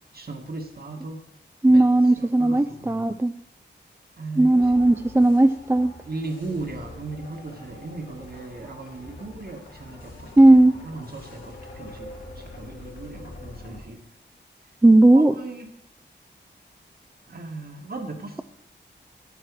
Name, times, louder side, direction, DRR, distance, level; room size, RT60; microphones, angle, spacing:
voice 1, 0.1-1.2 1.7-1.8 2.2-3.1 4.2-4.9 6.1-10.3 10.8-14.0 15.1-15.7 17.3-18.4, right 3 dB, 55° right, 3 dB, 1.8 m, -37 dB
voice 2, 1.6-3.3 4.4-5.9 10.4-10.7 14.8-15.3, right 2 dB, 15° right, 10 dB, 0.4 m, -16 dB
sound 1, 4.6-13.8, left 2 dB, 85° left, 3.7 m, -44 dB
10.5 x 9.2 x 4.8 m, 0.83 s
wide cardioid pair, 70°, 19 cm